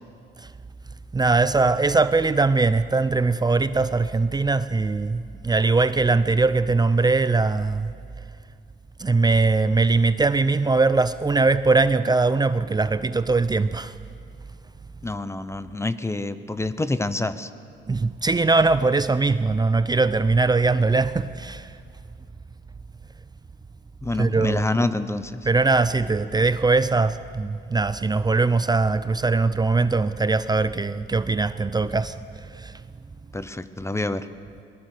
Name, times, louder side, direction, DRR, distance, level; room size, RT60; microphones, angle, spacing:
voice 1, 1.1-7.9 9.0-13.9 17.9-21.8 24.1-24.6 25.4-32.8, right 3 dB, 20° right, 0.6 m, -21 dB
voice 2, 15.0-17.5 24.0-25.5 33.3-34.3, left 2 dB, 15° left, 0.8 m, -27 dB
21.0 x 19.5 x 6.6 m
cardioid pair, 90°, 20 cm